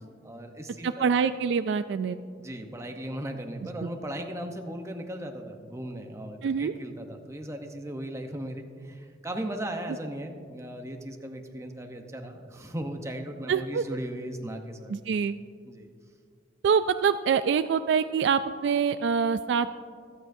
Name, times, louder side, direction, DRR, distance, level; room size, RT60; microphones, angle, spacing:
voice 1, 0.2-1.2 2.4-14.9 15.7-15.9, right 1 dB, 15° right, 4 dB, 0.8 m, -37 dB
voice 2, 0.8-2.2 3.8-3.9 6.4-6.7 13.5-13.8 14.9-15.4 16.6-19.7, right 6 dB, 65° right, 11 dB, 0.3 m, -25 dB
25.0 x 8.8 x 2.7 m, 2.1 s
head